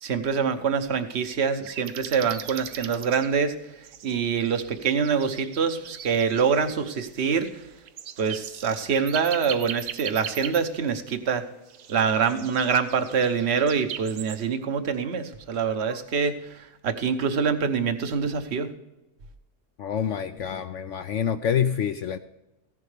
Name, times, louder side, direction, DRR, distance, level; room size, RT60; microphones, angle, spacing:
voice 1, 0.0-7.7 8.2-11.4 11.9-18.7, right 6 dB, 45° right, 9 dB, 1.1 m, -25 dB
sound 1, 1.6-3.3 3.8-11.0 11.7-14.4, right 9 dB, 90° right, 1.3 m, -39 dB
voice 2, 19.8-22.2, left 8 dB, 70° left, 10 dB, 0.7 m, -27 dB
15.0 x 11.0 x 3.4 m, 0.93 s
omnidirectional pair, 1.7 m